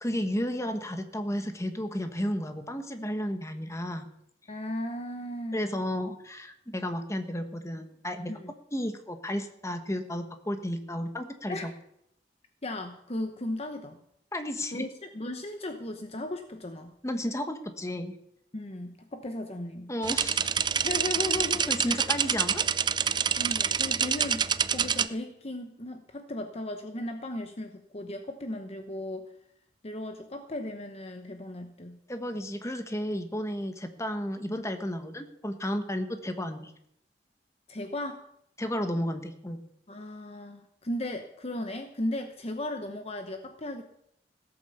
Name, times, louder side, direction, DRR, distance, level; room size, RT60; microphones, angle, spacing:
voice 1, 0.0-4.1 5.5-8.3 8.7-11.7 14.3-14.9 17.0-18.2 19.9-20.4 21.7-22.7 32.1-36.7 38.6-39.6, equal, 15° left, 7 dB, 1.4 m, -33 dB
voice 2, 4.5-5.8 8.3-8.5 11.5-11.6 12.6-14.0 14.7-16.9 18.5-19.9 20.8-22.0 23.4-29.3 29.8-32.0 37.7-38.3 39.9-43.8, left 1 dB, 35° left, 7 dB, 0.9 m, -36 dB
sound 1, 20.0-25.1, right 7 dB, 25° right, 0.4 m, -27 dB
16.5 x 8.7 x 7.1 m, 0.75 s
head